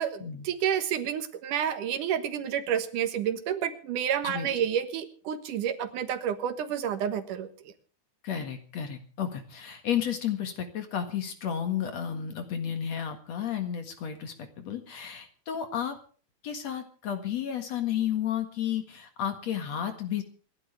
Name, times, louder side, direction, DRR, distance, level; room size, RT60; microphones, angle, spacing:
voice 1, 0.0-7.5, right 9 dB, 85° right, 10 dB, 3.0 m, -29 dB
voice 2, 8.2-16.0 16.4-20.2, left 9 dB, 60° left, 7 dB, 2.8 m, -32 dB
26.5 x 12.0 x 3.4 m, 0.41 s
omnidirectional pair, 3.5 m